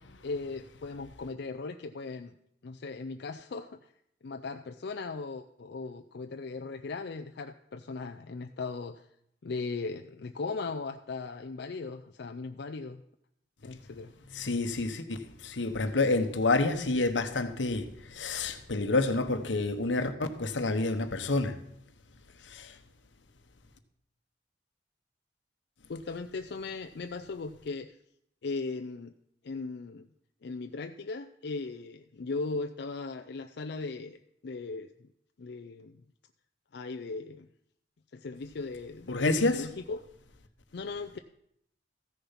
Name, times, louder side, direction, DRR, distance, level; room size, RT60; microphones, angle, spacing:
voice 1, 0.2-2.3 2.6-3.8 4.2-9.1 9.4-13.0 13.6-14.1 25.9-27.9 28.4-29.1 29.4-30.1 30.4-34.2 34.4-35.1 35.4-36.0 36.7-37.5 38.1-40.0 40.7-41.2, left 3 dB, 65° left, 0.5 m, -38 dB
voice 2, 14.3-21.6 22.4-22.8 39.1-39.7, left 2 dB, 85° left, 1.1 m, -29 dB
14.5 x 6.9 x 5.7 m
head